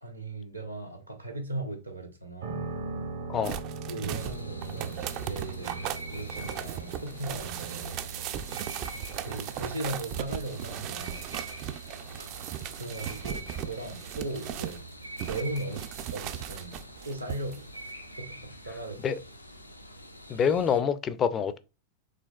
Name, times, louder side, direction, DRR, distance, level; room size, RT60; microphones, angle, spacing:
voice 1, 0.0-2.7 3.9-8.0 9.2-11.3 12.8-14.8 15.2-17.7 18.2-19.0, right 2 dB, 85° right, 1.1 m, -37 dB
sound 1, 2.4-18.3, right 4 dB, 60° right, 0.9 m, -43 dB
sound 2, 3.4-14.8 15.2-17.6 17.9-18.0, right 11 dB, 40° right, 0.4 m, -37 dB
sound 3, 4.2-20.8, equal, 85° left, 0.5 m, -46 dB
voice 2, 20.3-21.6, left 7 dB, 25° left, 0.4 m, -26 dB
5.1 x 3.4 x 2.3 m
figure-of-eight pair, 90°, 0 cm